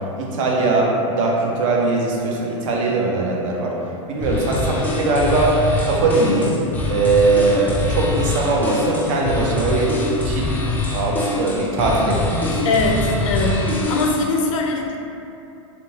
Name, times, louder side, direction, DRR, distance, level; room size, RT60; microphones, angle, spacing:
voice 1, 0.2-3.8 4.1-5.6 5.8-6.6 6.9-10.0 10.2-10.6 10.9-12.6, right 3 dB, 70° right, -2 dB, 0.6 m, -20 dB
sound 1, 4.2-14.3, left 2 dB, 10° left, 0.3 m, -24 dB
voice 2, 12.6-15.0, left 2 dB, 75° left, 1 dB, 0.4 m, -22 dB
2.8 x 2.2 x 2.7 m, 2.7 s
hypercardioid pair, 115°, 17 cm